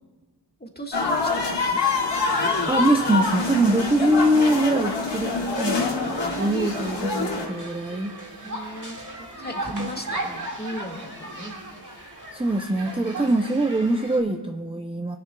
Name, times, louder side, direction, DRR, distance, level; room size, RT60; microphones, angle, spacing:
voice 1, 0.6-1.8 5.2-6.6 8.4-11.5, equal, 20° left, 1 dB, 1.6 m, -36 dB
sound 1, 0.9-7.5, left 3 dB, 85° left, 1.9 m, -25 dB
voice 2, 2.7-5.8 6.2-8.1 9.7-9.9 12.3-15.2, right 1 dB, 15° right, 5 dB, 0.5 m, -23 dB
sound 2, 6.0-14.2, right 2 dB, 45° right, 2.0 m, -37 dB
24.0 x 10.0 x 2.3 m, 1.3 s
wide cardioid pair, 45°, 42 cm